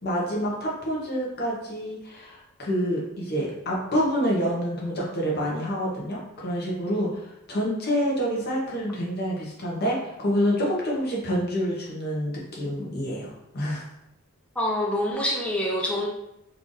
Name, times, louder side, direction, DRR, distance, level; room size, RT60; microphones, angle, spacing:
voice 1, 0.0-13.8, equal, 45° left, -3 dB, 1.0 m, -27 dB
voice 2, 14.6-16.1, left 1 dB, 5° left, -2 dB, 0.5 m, -26 dB
3.3 x 2.6 x 3.8 m, 0.84 s
head